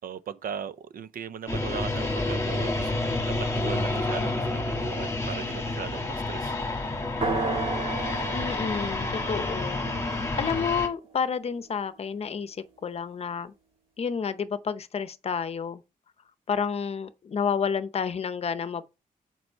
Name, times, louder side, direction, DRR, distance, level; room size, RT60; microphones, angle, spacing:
voice 1, 0.0-6.5, right 7 dB, 80° right, 0.6 m, -38 dB
sound 1, 1.5-10.9, left 2 dB, 20° left, 1.5 m, -29 dB
sound 2, 7.2-11.1, right 3 dB, 40° right, 2.2 m, -33 dB
voice 2, 8.3-13.5 14.0-15.8 16.5-18.8, left 6 dB, 45° left, 0.7 m, -30 dB
8.0 x 4.6 x 4.5 m
wide cardioid pair, 170°, 15 cm